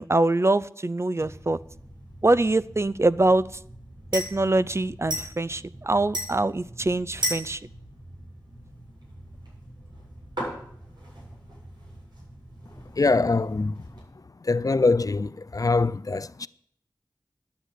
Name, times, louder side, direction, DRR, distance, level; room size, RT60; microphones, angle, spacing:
voice 1, 0.0-1.6 2.2-3.5 4.1-7.6, right 2 dB, 35° right, 0.5 m, -23 dB
sound 1, 1.2-14.0, equal, 70° right, 7.6 m, -38 dB
voice 2, 13.0-13.7 14.4-16.5, left 3 dB, 50° left, 0.4 m, -23 dB
10.5 x 9.5 x 8.2 m
wide cardioid pair, 45°, 8 cm